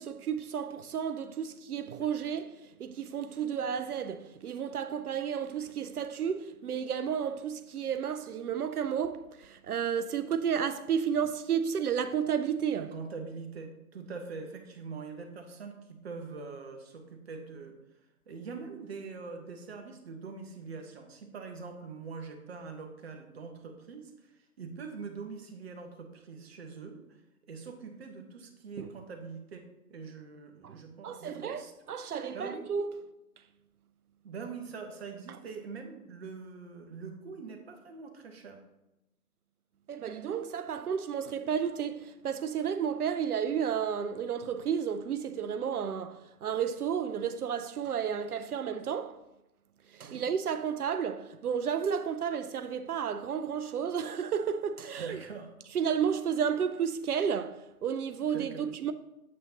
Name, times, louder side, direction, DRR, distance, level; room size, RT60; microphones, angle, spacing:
voice 1, 0.0-13.0 28.8-28.9 30.6-31.6 31.9-33.1 39.9-49.2 49.9-55.2 55.7-58.9, right 7 dB, 75° right, 0.6 m, -32 dB
voice 2, 12.8-17.8 18.3-24.3 24.6-27.0 27.5-31.7 32.3-32.6 34.2-38.6 50.0-50.3 54.9-55.5 58.2-58.7, right 4 dB, 40° right, 1.2 m, -43 dB
8.5 x 7.1 x 2.8 m
figure-of-eight pair, 140°, 45 cm